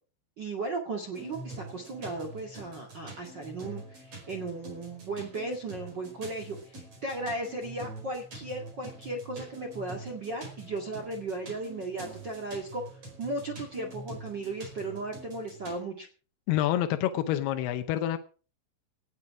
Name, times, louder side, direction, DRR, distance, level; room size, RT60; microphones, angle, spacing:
voice 1, 0.4-12.8 13.2-16.1, right 2 dB, 85° right, 3 dB, 0.9 m, -36 dB
sound 1, 1.1-15.8, right 2 dB, 30° right, 5.6 m, -45 dB
voice 2, 16.5-18.2, left 12 dB, 80° left, 8 dB, 2.4 m, -27 dB
18.5 x 12.5 x 4.8 m, 0.39 s
omnidirectional pair, 5.6 m